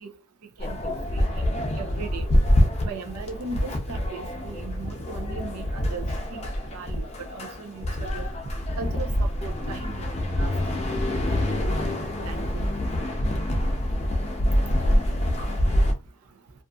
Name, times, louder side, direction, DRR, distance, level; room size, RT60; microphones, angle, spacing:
sound 1, 0.6-15.9, left 1 dB, 30° left, 0.5 m, -26 dB
voice 1, 0.6-1.3 1.8-2.3 2.8-8.3 8.8-10.8 11.4-11.5 12.2-12.6, right 4 dB, 85° right, 0.7 m, -38 dB
voice 2, 14.6-16.6, equal, 35° right, 0.4 m, -53 dB
2.6 x 2.5 x 2.3 m
head